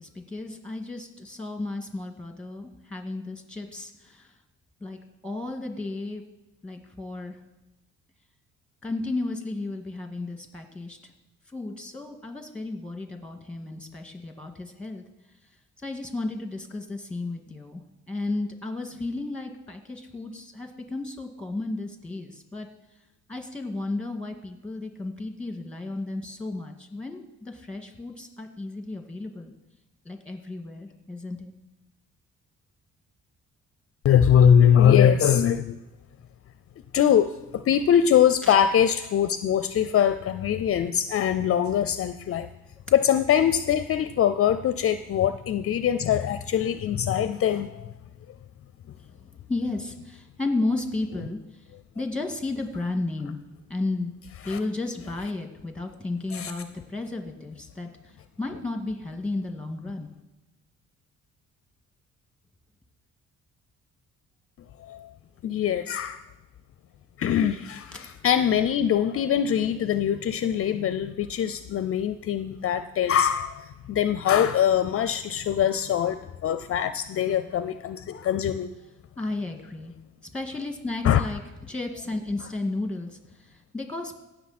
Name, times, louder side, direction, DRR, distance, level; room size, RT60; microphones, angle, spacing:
voice 1, 0.0-4.3 4.8-6.2 6.6-7.4 8.8-11.1 11.5-15.0 15.8-17.8 18.1-22.7 23.3-29.5 30.1-31.5 38.4-38.5 49.5-51.4 52.0-53.4 53.7-54.1 54.4-60.1 79.2-79.9 80.3-81.4 81.7-84.2, left 2 dB, 5° left, 5 dB, 1.9 m, -33 dB
voice 2, 34.0-35.8 36.9-42.5 42.9-47.9 54.4-54.6 56.3-56.5 64.8-65.1 65.4-66.2 67.2-78.7 81.0-81.2, left 9 dB, 50° left, 12 dB, 0.5 m, -22 dB
17.0 x 6.3 x 4.2 m, 1.0 s
cardioid pair, 90°, 30 cm